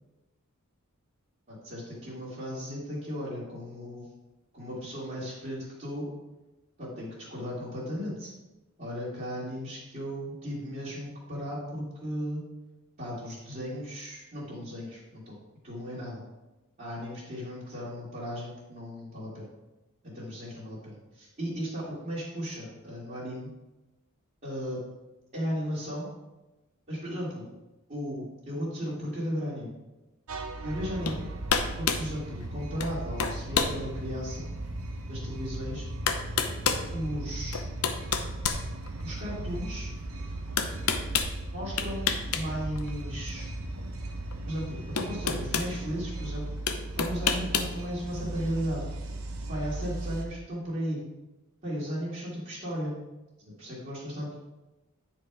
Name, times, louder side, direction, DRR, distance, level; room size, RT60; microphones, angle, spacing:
voice 1, 1.5-4.1 4.5-6.1 6.8-8.3 8.8-12.4 13.0-15.3 15.6-16.2 16.8-19.5 20.1-23.5 24.4-24.8 25.3-26.1 26.9-27.5 27.9-29.7 30.6-31.3 31.8-34.5 35.1-35.9 36.9-37.6 39.0-39.9 41.5-43.5 44.5-46.5 46.9-48.8 49.5-51.0 51.6-52.9 53.6-54.4, equal, 40° right, -10 dB, 2.6 m, -35 dB
sound 1, 30.3-50.2, right 2 dB, 80° right, 1.0 m, -37 dB
sound 2, 31.1-31.2 31.5-32.1 32.8-32.9 33.2-33.8 34.4-34.5 35.5-35.6 36.1-36.9 37.5-39.2 40.6-41.3 41.8-42.5 42.8-42.9 44.3-44.4 45.0-45.7 46.7-47.7, left 6 dB, 85° left, 0.7 m, -28 dB
9.9 x 4.4 x 4.8 m, 1.0 s
head